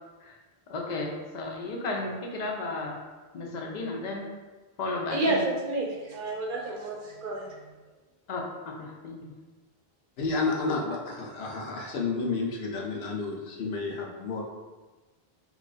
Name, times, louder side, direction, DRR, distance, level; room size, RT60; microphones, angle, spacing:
voice 1, 0.7-3.0 3.3-4.3 4.8-5.5 8.3-9.2, left 2 dB, 50° left, 0 dB, 0.6 m, -33 dB
voice 2, 5.1-7.6, right 2 dB, 60° right, -1 dB, 0.8 m, -30 dB
voice 3, 10.2-14.4, left 3 dB, 80° left, -1 dB, 0.9 m, -31 dB
3.0 x 2.4 x 3.9 m, 1.3 s
omnidirectional pair, 1.0 m